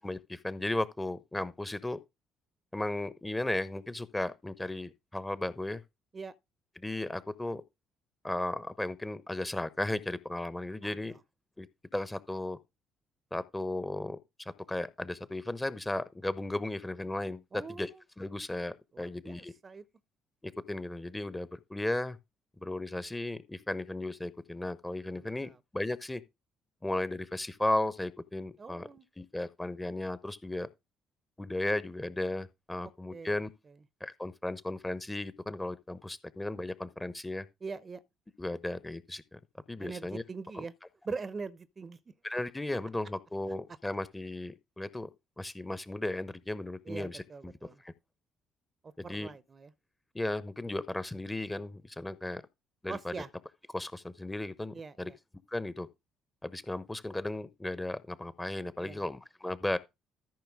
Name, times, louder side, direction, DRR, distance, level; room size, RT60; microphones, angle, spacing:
voice 1, 0.0-2.0 2.7-5.8 6.8-7.6 8.2-11.2 11.6-11.7 11.9-12.6 13.3-17.9 18.2-19.5 20.4-22.2 22.6-26.2 26.8-28.9 29.2-30.7 31.4-33.5 34.0-37.4 38.4-39.4 39.7-40.2 40.5-40.6 42.2-45.1 45.4-47.5 47.8-47.9 49.0-49.3 50.1-52.4 52.8-53.1 53.7-55.1 55.5-55.9 56.4-59.8, left 1 dB, 15° left, 1.0 m, -35 dB
voice 2, 10.8-11.2 17.5-18.0 18.9-19.8 25.1-25.6 28.6-29.0 33.1-33.4 33.7-33.8 37.6-38.0 39.8-40.7 41.0-42.0 46.8-47.8 48.8-49.7 52.9-53.3 54.7-55.2 58.8-59.1, right 4 dB, 35° right, 0.8 m, -42 dB
13.5 x 5.8 x 3.6 m
figure-of-eight pair, 45°, 0 cm